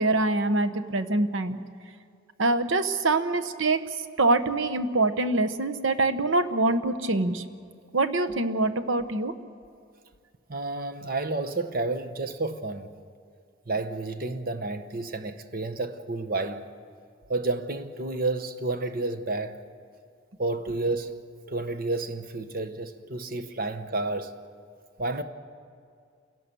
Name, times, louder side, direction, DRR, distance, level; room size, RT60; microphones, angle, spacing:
voice 1, 0.0-1.6 2.4-3.8 4.2-7.4 7.9-9.3, right 2 dB, 75° right, 1.1 m, -24 dB
voice 2, 10.5-12.9 13.7-16.7 17.3-19.6 20.4-21.2 21.5-24.3 25.0-25.2, right 2 dB, 45° right, 1.1 m, -30 dB
28.5 x 17.0 x 6.9 m
head